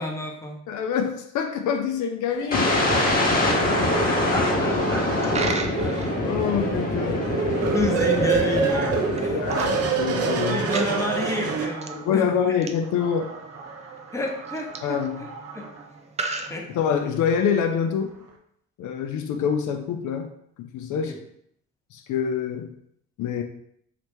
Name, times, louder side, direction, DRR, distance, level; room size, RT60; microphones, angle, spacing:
voice 1, 0.0-0.6 4.0-6.0 7.6-8.9 9.2-9.4 10.4-12.2 14.1-15.3 15.5-15.7 16.5-16.7 21.0-21.2, left 2 dB, 10° left, 1 dB, 0.7 m, -30 dB
voice 2, 0.7-3.6 5.5-5.7 6.2-7.3 9.3-10.6 11.9-13.3 14.8-15.2 16.7-18.1 18.8-20.3 20.6-21.1 21.9-22.7 23.2-23.4, left 7 dB, 75° left, 5 dB, 0.5 m, -26 dB
sound 1, 2.3-12.2 12.8-15.8 16.5-16.6, right 5 dB, 55° right, 0.7 m, -29 dB
sound 2, 2.5-10.4, left 1 dB, 30° left, 1.0 m, -24 dB
Coin (dropping), 5.0-17.3, right 3 dB, 25° right, 0.4 m, -39 dB
2.9 x 2.9 x 3.4 m, 0.70 s
cardioid pair, 90°, 30 cm